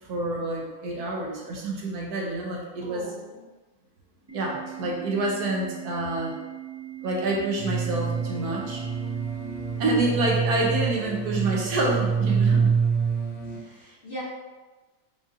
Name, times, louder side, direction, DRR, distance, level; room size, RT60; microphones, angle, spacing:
voice 1, 0.1-3.0 4.3-6.4 7.0-8.8 9.8-12.7, right 2 dB, 75° right, -2 dB, 1.2 m, -27 dB
voice 2, 2.8-3.4 4.8-5.1 9.7-10.0 13.5-14.2, right 1 dB, 40° left, -8 dB, 0.9 m, -42 dB
Organ, 4.3-10.3, right 12 dB, 25° right, 0.5 m, -40 dB
sound 1, 7.6-13.6, right 6 dB, 70° left, 1.2 m, -26 dB
5.1 x 2.4 x 2.6 m, 1.2 s
omnidirectional pair, 1.7 m